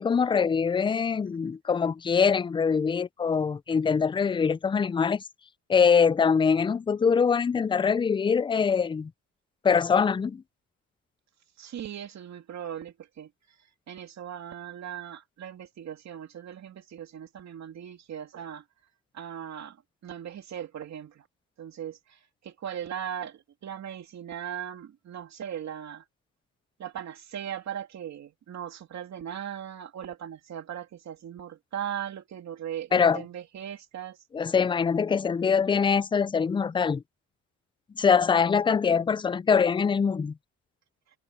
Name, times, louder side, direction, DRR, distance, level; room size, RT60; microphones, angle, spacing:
voice 1, 0.0-5.2 5.7-9.1 9.6-10.4 32.9-33.2 34.3-37.0 38.0-40.3, left 6 dB, 15° left, 0.3 m, -23 dB
voice 2, 11.6-13.3 13.9-18.6 19.1-19.8 20.0-21.3 21.6-26.0 26.8-34.2, right 9 dB, 65° right, 2.8 m, -38 dB
open air
cardioid pair, 90°, 30 cm